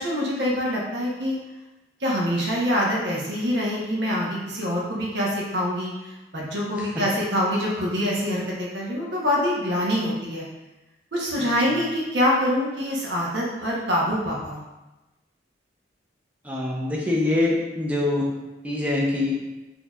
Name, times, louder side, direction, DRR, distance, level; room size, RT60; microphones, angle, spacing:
voice 1, 0.0-1.4 2.0-5.9 6.3-10.5 11.1-14.6, equal, 75° right, -4 dB, 0.9 m, -25 dB
voice 2, 16.5-18.3 18.6-19.4, left 2 dB, 10° right, -3 dB, 0.6 m, -24 dB
4.5 x 2.7 x 2.4 m, 1.1 s
head